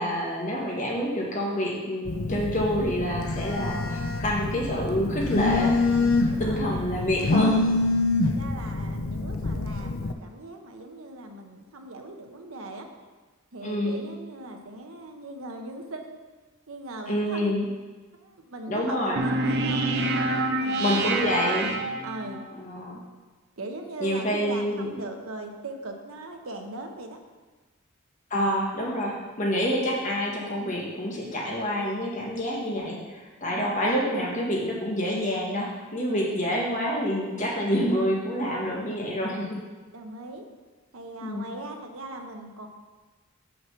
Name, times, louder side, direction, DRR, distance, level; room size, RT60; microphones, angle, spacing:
voice 1, 0.0-5.8 6.4-7.6 13.6-14.0 17.1-17.7 18.7-19.2 20.8-21.8 22.5-23.0 24.0-24.9 28.3-39.5 41.2-41.4, equal, 35° left, -3 dB, 1.6 m, -27 dB
Telephone, 2.1-10.1, left 3 dB, 75° left, 0.6 m, -26 dB
voice 2, 6.3-7.7 8.2-12.9 13.5-16.1 16.7-17.6 18.1-19.9 20.3-21.7 22.0-22.4 23.6-27.2 39.9-40.4 40.9-42.7, right 2 dB, 75° right, 3 dB, 0.9 m, -39 dB
sound 1, 19.2-22.4, right 2 dB, 50° right, 0.7 m, -27 dB
6.3 x 6.0 x 5.7 m, 1.3 s
head